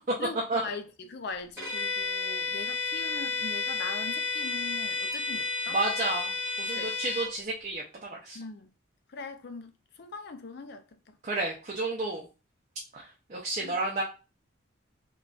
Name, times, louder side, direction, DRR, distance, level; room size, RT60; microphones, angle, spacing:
voice 1, 0.2-5.8 6.7-6.9 8.3-8.7 9.1-11.2 13.6-13.8, left 4 dB, 50° left, 0.4 m, -41 dB
Bowed string instrument, 1.6-7.3, left 4 dB, 10° right, 1.7 m, -32 dB
voice 2, 5.7-8.4 11.2-12.3 12.9-14.0, right 2 dB, 35° right, 0.5 m, -31 dB
3.8 x 2.3 x 2.3 m
head